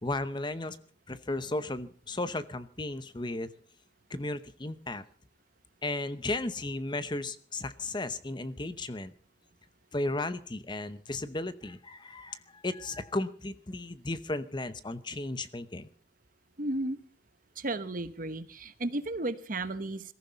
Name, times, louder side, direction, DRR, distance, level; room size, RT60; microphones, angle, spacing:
voice 1, 0.0-0.8 1.1-3.5 4.1-5.0 5.8-9.1 9.9-15.9, left 2 dB, 25° left, 13 dB, 0.8 m, -35 dB
voice 2, 16.6-17.0 17.6-20.0, right 2 dB, 45° right, 12 dB, 1.1 m, -33 dB
22.0 x 14.5 x 4.0 m, 0.42 s
head